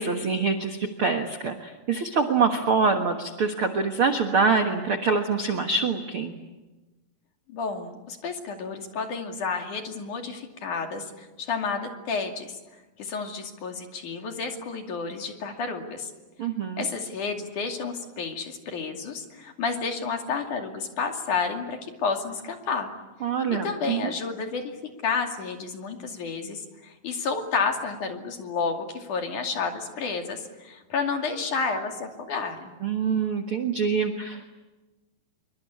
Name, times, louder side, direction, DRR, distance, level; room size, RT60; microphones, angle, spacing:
voice 1, 0.0-6.3 16.4-16.9 23.2-24.1 32.8-34.5, right 5 dB, 65° right, 5 dB, 1.3 m, -25 dB
voice 2, 7.5-12.6 13.0-16.1 16.8-22.9 23.6-24.6 25.0-32.7, left 5 dB, 50° left, 4 dB, 3.7 m, -30 dB
26.5 x 24.0 x 8.6 m, 1.1 s
omnidirectional pair, 4.9 m